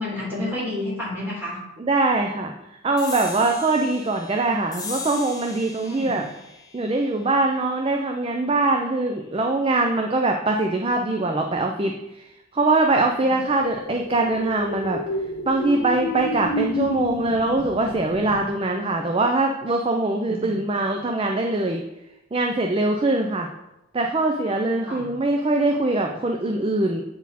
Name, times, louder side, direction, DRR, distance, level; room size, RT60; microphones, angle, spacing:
voice 1, 0.0-1.6 5.8-6.2 13.2-13.4 20.2-20.6 24.9-25.1, left 1 dB, 10° right, -7 dB, 2.8 m, -31 dB
voice 2, 1.8-2.5 2.8-6.2 6.7-12.2 12.5-15.0 15.5-21.8 22.3-23.5 23.9-27.0, right 2 dB, 25° right, 3 dB, 0.4 m, -22 dB
sound 1, 3.0-9.8, left 4 dB, 20° left, 0.8 m, -40 dB
sound 2, 13.4-18.4, left 1 dB, 80° left, 1.1 m, -29 dB
8.4 x 4.2 x 4.1 m, 0.90 s
head